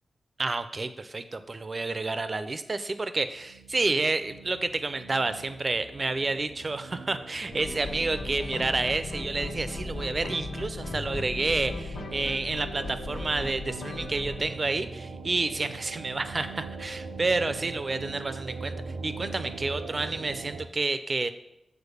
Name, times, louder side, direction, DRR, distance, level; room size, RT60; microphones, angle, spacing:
voice 1, 0.4-18.7 19.0-21.3, right 3 dB, 30° right, 11 dB, 0.5 m, -29 dB
sound 1, 3.3-20.7, right 4 dB, 90° right, 0.5 m, -42 dB
sound 2, 7.5-14.4, left 2 dB, 75° left, 1.0 m, -37 dB
sound 3, 10.8-11.3, left 3 dB, 45° left, 0.5 m, -39 dB
7.1 x 4.2 x 6.7 m, 0.84 s
wide cardioid pair, 155°, 0 cm